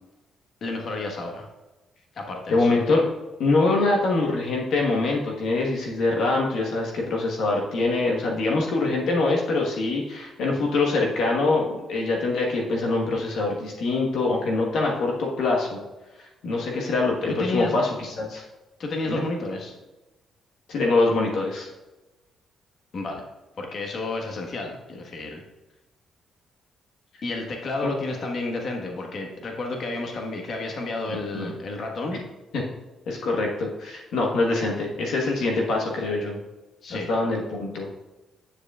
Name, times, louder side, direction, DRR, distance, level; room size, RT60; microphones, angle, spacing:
voice 1, 0.6-1.5 2.1-2.7 17.4-17.8 18.8-19.8 22.9-23.2 23.6-25.4 27.2-32.2 36.8-37.1, left 2 dB, 55° left, 2 dB, 1.4 m, -31 dB
voice 2, 2.5-3.1 3.4-15.8 16.4-18.4 19.0-19.2 20.7-21.7 27.8-27.9 31.1-31.5 32.5-32.6 33.1-36.4 36.9-37.9, left 3 dB, 75° left, 0 dB, 1.3 m, -24 dB
9.7 x 7.3 x 2.4 m, 1.1 s
cardioid pair, 90°, 0 cm